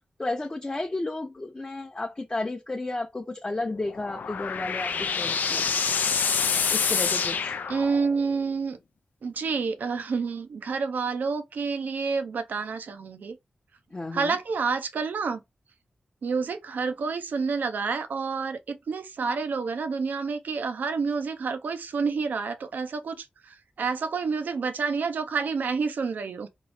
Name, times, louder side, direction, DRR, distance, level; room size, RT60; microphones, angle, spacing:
voice 1, 0.2-5.6 6.7-7.6 13.9-14.4, left 2 dB, 30° left, 0.6 m, -32 dB
sound 1, 3.7-8.3, left 6 dB, 85° left, 0.3 m, -27 dB
voice 2, 7.7-8.8 9.2-13.4 14.1-15.4 16.2-26.5, right 5 dB, 85° right, 0.5 m, -29 dB
3.0 x 2.0 x 4.0 m
cardioid pair, 45°, 3 cm